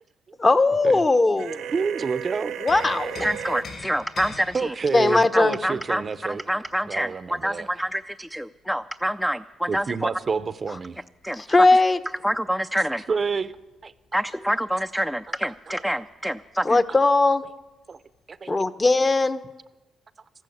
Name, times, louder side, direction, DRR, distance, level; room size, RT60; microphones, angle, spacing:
voice 1, 0.4-1.6 2.6-3.3 4.9-5.6 11.4-12.0 16.6-17.4 18.5-19.4, left 2 dB, 25° left, 10 dB, 0.8 m, -19 dB
sound 1, 1.3-2.1 2.4-7.9 9.8-15.6 15.9-16.0 16.4-17.1 17.9-18.0, left 4 dB, 55° left, 4.4 m, -45 dB
sound 2, 1.4-3.6, right 9 dB, 85° right, 1.1 m, -34 dB
voice 2, 1.7-2.6 4.5-6.4 6.9-7.7 9.7-11.0 13.1-13.5 13.8-13.9 17.9-18.0 18.3-18.6, right 5 dB, 40° right, 14 dB, 0.6 m, -28 dB
voice 3, 3.2-4.7 5.3-10.1 11.2-11.4 12.2-13.0 14.1-16.8, equal, ahead, 8 dB, 0.4 m, -27 dB
14.0 x 12.5 x 7.9 m, 1.1 s
cardioid pair, 90°, 0 cm